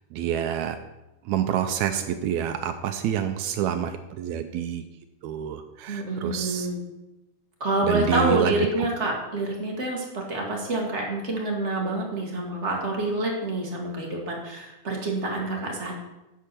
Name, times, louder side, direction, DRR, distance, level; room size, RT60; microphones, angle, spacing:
voice 1, 0.1-0.8 1.2-4.8 5.2-6.7 7.8-8.5, right 9 dB, 85° right, 8 dB, 1.7 m, -27 dB
voice 2, 5.9-6.8 7.6-15.9, right 2 dB, 35° right, -1 dB, 1.2 m, -27 dB
10.0 x 4.7 x 6.7 m, 0.98 s
omnidirectional pair, 3.8 m